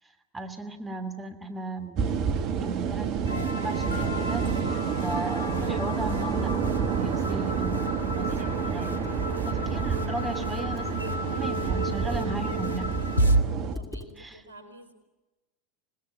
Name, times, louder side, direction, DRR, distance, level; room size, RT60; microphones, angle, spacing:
voice 1, 0.3-2.2 2.6-6.6 7.0-9.1 9.4-10.9 11.3-13.0 14.2-14.4, right 2 dB, 15° right, 6 dB, 2.9 m, -36 dB
sound 1, 2.0-13.8, right 6 dB, 45° right, 1.7 m, -29 dB
sound 2, 3.2-13.4, equal, 90° left, 1.3 m, -31 dB
Computer keyboard, 9.0-11.8 12.4-13.1 13.4-13.5 13.7-14.1, left 2 dB, 5° left, 3.0 m, -43 dB
voice 2, 13.7-14.9, right 1 dB, 80° right, 8 dB, 4.2 m, -49 dB
27.5 x 20.0 x 8.3 m, 1.1 s
figure-of-eight pair, 80°, 0 cm